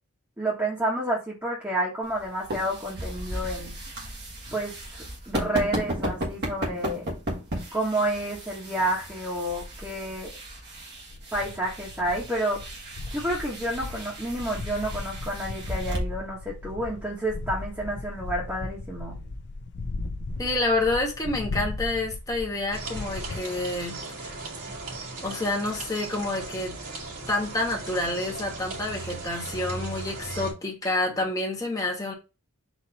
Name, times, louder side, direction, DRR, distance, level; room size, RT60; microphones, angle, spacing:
voice 1, 0.4-3.7 4.5-7.1 7.7-10.3 11.3-12.7 13.1-19.2, right 1 dB, 10° right, 1.3 m, -30 dB
sound 1, 2.0-16.0, right 1 dB, 50° right, 1.5 m, -35 dB
sound 2, 11.1-23.4, left 2 dB, 50° left, 0.6 m, -36 dB
voice 2, 20.4-24.0 24.2-24.3 25.2-26.8 27.3-32.1, left 2 dB, 15° left, 1.4 m, -28 dB
sound 3, 22.7-30.5, right 3 dB, 65° right, 2.3 m, -37 dB
4.3 x 3.0 x 4.0 m
head